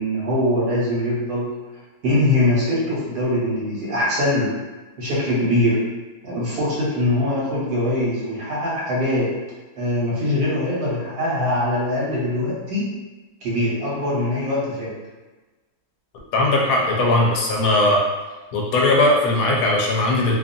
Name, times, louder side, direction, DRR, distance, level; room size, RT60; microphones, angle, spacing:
voice 1, 0.0-1.5 2.0-4.5 5.0-5.8 6.2-9.3 9.8-12.9 13.4-14.9, left 1 dB, 70° right, -7 dB, 1.5 m, -22 dB
voice 2, 16.3-18.0 18.5-20.4, left 2 dB, 70° left, -2 dB, 1.0 m, -18 dB
2.8 x 2.4 x 2.6 m, 1.2 s
omnidirectional pair, 1.6 m